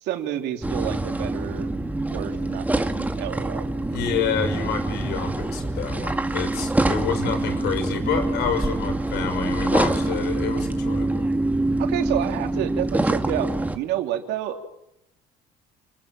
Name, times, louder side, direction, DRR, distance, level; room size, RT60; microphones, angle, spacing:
voice 1, 0.0-1.7 2.1-3.7 11.8-13.5 13.7-14.6, right 11 dB, 85° right, 5 dB, 3.3 m, -29 dB
sound 1, 0.6-13.8, right 2 dB, 10° right, 2.0 m, -25 dB
voice 2, 3.8-11.3, left 7 dB, 80° left, 8 dB, 5.6 m, -28 dB
29.0 x 21.5 x 7.8 m, 0.82 s
cardioid pair, 110°, 17 cm